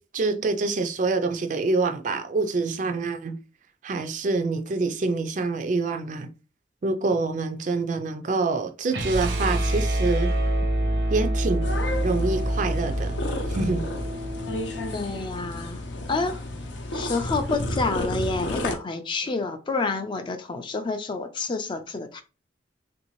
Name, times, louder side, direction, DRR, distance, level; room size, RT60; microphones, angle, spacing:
voice 1, 0.1-3.4 3.8-6.3 6.8-10.3 11.1-11.7 12.0-13.1 13.5-13.9, right 3 dB, 45° right, 0.4 m, -26 dB
sound 1, 8.9-15.0, right 1 dB, 80° right, 0.7 m, -26 dB
sound 2, 11.6-18.8, left 1 dB, 85° left, 0.6 m, -32 dB
voice 2, 14.9-16.4 16.9-22.2, left 3 dB, 25° left, 0.4 m, -29 dB
3.2 x 2.6 x 3.0 m
head